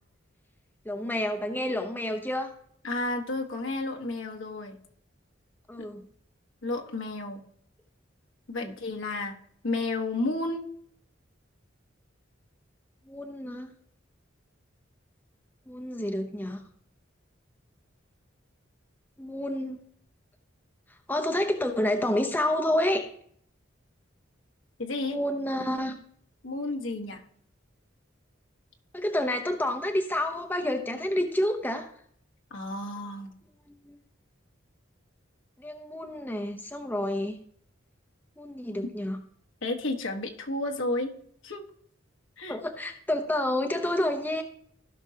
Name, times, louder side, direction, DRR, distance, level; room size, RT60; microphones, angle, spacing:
voice 1, 0.8-2.5 5.7-6.0 8.6-8.7 13.1-13.7 15.7-16.6 19.2-19.8 21.1-23.1 25.0-26.0 28.9-31.9 33.8-34.0 35.6-37.4 38.4-39.2 42.5-44.4, left 1 dB, 10° left, 4 dB, 0.7 m, -29 dB
voice 2, 2.8-4.8 6.6-7.4 8.5-9.3 9.6-10.7 24.8-25.2 26.4-27.2 32.5-33.3 39.6-41.1 41.4-41.6 42.4-42.6, left 2 dB, 75° left, 2 dB, 1.4 m, -31 dB
16.5 x 6.2 x 2.8 m, 0.63 s
head